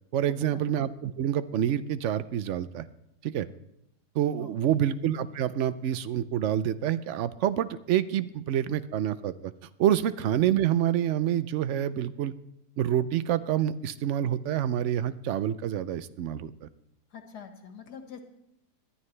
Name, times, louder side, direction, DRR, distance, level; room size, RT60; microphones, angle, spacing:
voice 1, 0.1-2.8 3.2-3.5 4.1-9.5 9.8-12.3 12.8-16.7, right 10 dB, 65° right, 14 dB, 0.7 m, -27 dB
voice 2, 4.4-4.8 17.1-18.2, left 7 dB, 75° left, 5 dB, 2.1 m, -45 dB
20.5 x 12.5 x 3.3 m, 0.82 s
omnidirectional pair, 1.8 m